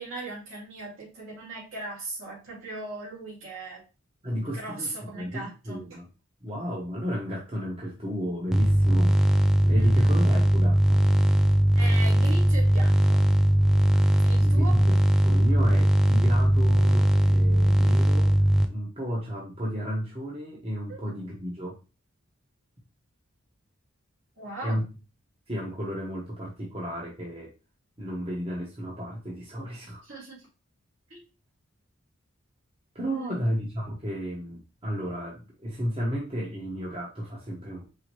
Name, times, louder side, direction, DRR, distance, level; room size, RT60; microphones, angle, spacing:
voice 1, 0.0-3.8 4.5-5.8 9.8-10.2 11.7-13.2 14.2-14.8 20.9-21.0 24.4-24.8 30.0-30.5 31.1-31.2 33.1-33.5, right 2 dB, 70° right, -6 dB, 2.3 m, -38 dB
voice 2, 4.2-6.1 6.4-11.0 14.0-14.2 14.4-15.0 15.2-18.4 18.7-21.8 24.6-24.8 25.5-27.5 28.0-30.0 32.9-37.9, equal, 25° right, -4 dB, 1.1 m, -33 dB
sound 1, 8.5-18.7, right 1 dB, ahead, 0.4 m, -20 dB
4.9 x 3.4 x 3.1 m, 0.30 s
head